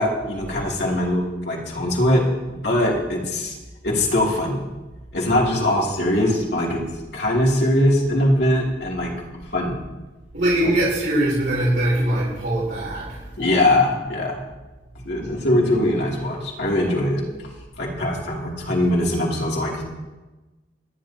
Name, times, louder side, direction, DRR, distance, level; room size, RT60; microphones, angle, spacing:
voice 1, 0.0-3.6 3.8-4.6 5.1-6.8 7.1-9.1 9.4-9.8 10.6-10.7 13.4-14.4 15.0-17.2 17.8-19.8, left 1 dB, 65° left, -3 dB, 3.0 m, -21 dB
voice 2, 10.3-13.3, right 1 dB, 75° right, -11 dB, 5.5 m, -22 dB
26.5 x 10.5 x 3.0 m, 1.2 s
head